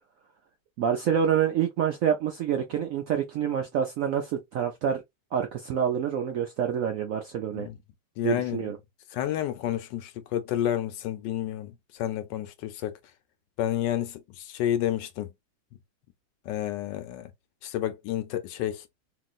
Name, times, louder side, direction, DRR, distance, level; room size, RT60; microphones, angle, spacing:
voice 1, 0.8-5.0 5.3-7.7 8.2-8.8, right 8 dB, 75° right, 0.7 m, -27 dB
voice 2, 8.2-8.7 9.1-13.0 13.6-15.3 16.4-17.3 17.6-18.9, left 12 dB, 80° left, 1.2 m, -30 dB
3.0 x 2.6 x 2.4 m
omnidirectional pair, 1.9 m